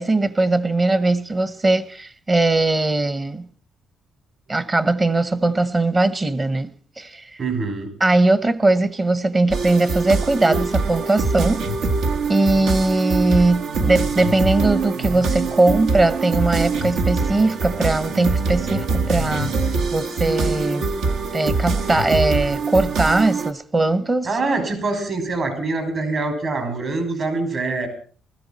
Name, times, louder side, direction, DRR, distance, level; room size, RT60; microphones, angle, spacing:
voice 1, 0.0-3.5 4.5-6.7 7.0-7.2 8.0-11.6 12.3-19.5 19.9-20.9 21.3-24.3, right 2 dB, 30° right, 1.1 m, -20 dB
voice 2, 7.4-7.9 24.2-27.9, right 3 dB, 55° right, 5.3 m, -24 dB
sound 1, 9.5-23.5, right 4 dB, 75° right, 1.4 m, -23 dB
20.5 x 13.5 x 4.2 m
cardioid pair, 90°, 0 cm